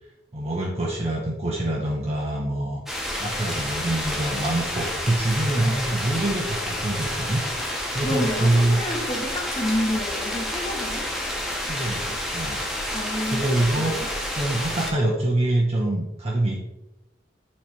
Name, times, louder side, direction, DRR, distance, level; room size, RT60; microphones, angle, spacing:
voice 1, 0.3-2.8 3.2-8.8 11.7-12.6 13.2-16.6, right 1 dB, 35° right, -2 dB, 0.9 m, -25 dB
sound 1, 2.9-14.9, left 1 dB, ahead, 1.1 m, -29 dB
voice 2, 8.0-11.1 12.9-14.1, left 1 dB, 30° left, 1 dB, 1.2 m, -29 dB
7.4 x 3.3 x 4.4 m, 0.91 s
head